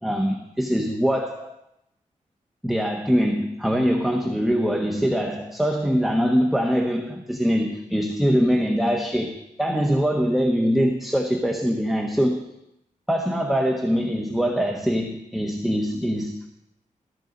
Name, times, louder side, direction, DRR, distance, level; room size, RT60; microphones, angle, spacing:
voice 1, 0.0-1.5 2.6-12.4 13.1-16.5, equal, ahead, 2 dB, 1.2 m, -23 dB
14.5 x 14.0 x 4.0 m, 0.83 s
wide cardioid pair, 110°, 14 cm